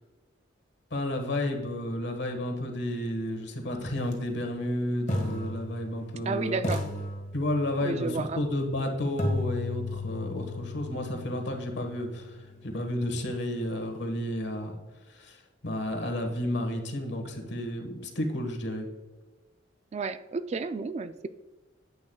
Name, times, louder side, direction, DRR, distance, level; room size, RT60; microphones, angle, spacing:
voice 1, 0.9-6.7 7.3-14.8 15.1-18.9, left 1 dB, 60° left, 5 dB, 1.4 m, -31 dB
sound 1, 4.0-4.1 5.1-6.2 6.6-7.9 9.2-13.1, left 2 dB, 35° left, 1.5 m, -35 dB
voice 2, 6.3-6.8 7.8-8.4 19.9-21.3, right 4 dB, 35° right, 11 dB, 0.3 m, -31 dB
9.9 x 8.6 x 2.3 m, 1.2 s
head